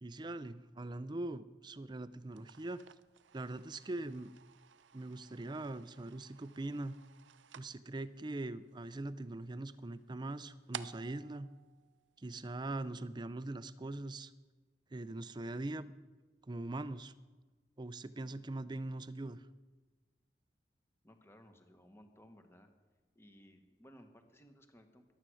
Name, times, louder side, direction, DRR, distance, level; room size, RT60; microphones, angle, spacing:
voice 1, 0.0-2.8 3.3-4.3 4.9-7.0 7.6-11.5 12.2-14.3 14.9-15.9 16.5-17.1 17.8-19.4, right 2 dB, 25° right, 15 dB, 0.5 m, -42 dB
sound 1, 2.2-12.6, right 8 dB, 85° right, 0.6 m, -55 dB
voice 2, 21.0-22.7 23.1-25.0, equal, 15° left, 6 dB, 1.4 m, -60 dB
14.5 x 11.5 x 6.3 m, 1.3 s
head